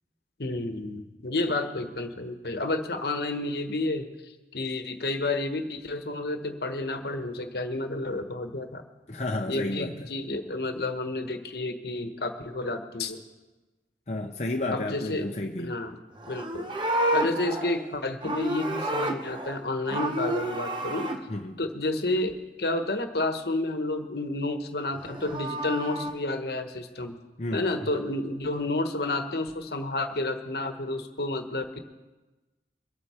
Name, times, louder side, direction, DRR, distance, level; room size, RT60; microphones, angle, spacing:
voice 1, 0.4-8.8 9.5-13.2 14.7-15.3 15.6-16.0 16.3-16.7 17.1-21.1 21.6-22.3 22.6-27.2 27.5-31.8, left 2 dB, 65° left, 7 dB, 1.2 m, -30 dB
voice 2, 9.1-9.9 14.1-15.7 21.3-21.6 27.4-27.7, left 2 dB, 40° left, 2 dB, 0.7 m, -31 dB
Livestock farm animals working animals, 16.2-19.6 19.9-21.2 24.9-26.1, right 1 dB, 25° right, 1.0 m, -30 dB
23.5 x 8.2 x 4.4 m, 1.2 s
head